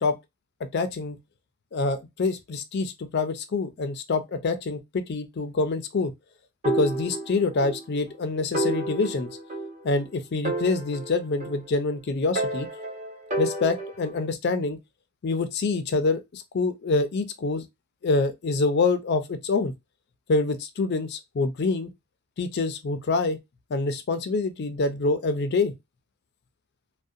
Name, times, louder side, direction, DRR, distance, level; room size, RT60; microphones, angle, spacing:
voice 1, 0.7-1.2 1.7-6.1 6.8-9.3 9.8-12.7 13.4-14.8 15.2-17.6 18.0-19.7 20.3-21.9 22.4-23.4 23.7-25.7, left 3 dB, 50° left, 0.4 m, -26 dB
sound 1, 6.6-7.8 8.1-8.2 8.5-10.1 10.4-11.9 12.3-14.2, right 2 dB, 35° right, 0.9 m, -30 dB
2.4 x 2.1 x 2.6 m
head